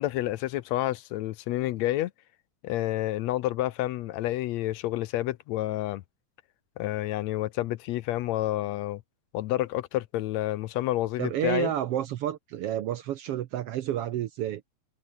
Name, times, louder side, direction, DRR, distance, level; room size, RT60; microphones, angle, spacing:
voice 1, 0.0-2.1 2.6-6.0 6.8-9.0 9.3-11.7, left 15 dB, 75° left, 1.8 m, -29 dB
voice 2, 11.2-14.6, right 11 dB, 70° right, 1.5 m, -30 dB
omnidirectional pair, 3.4 m